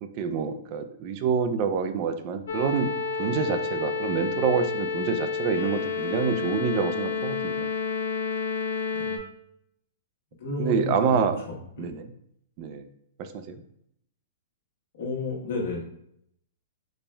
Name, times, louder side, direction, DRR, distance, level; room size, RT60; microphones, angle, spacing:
voice 1, 0.0-2.9 3.2-7.7 10.6-11.4 11.8-12.1 12.6-12.9 13.2-13.6, right 6 dB, 35° right, 8 dB, 0.3 m, -27 dB
sound 1, 2.5-9.2, left 5 dB, 90° left, 0.6 m, -30 dB
voice 2, 10.4-11.9 15.0-15.8, left 2 dB, 60° left, -2 dB, 1.2 m, -32 dB
4.2 x 2.2 x 3.3 m, 0.73 s
hypercardioid pair, 160°, 0 cm